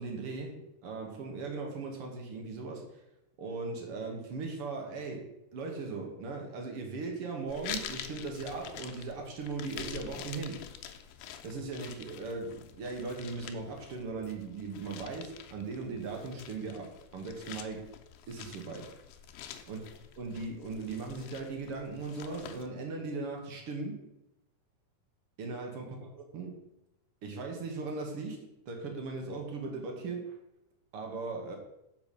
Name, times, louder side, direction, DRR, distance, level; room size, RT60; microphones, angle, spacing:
voice 1, 0.0-3.0 3.4-10.6 11.4-17.9 18.3-18.9 19.7-19.8 20.2-24.1 25.4-26.1 26.3-26.6 27.2-30.3 30.9-31.6, right 3 dB, 60° right, 2 dB, 1.7 m, -38 dB
sound 1, 7.5-22.7, left 9 dB, 80° left, 2.3 m, -46 dB
5.9 x 5.2 x 6.6 m, 0.87 s
omnidirectional pair, 4.0 m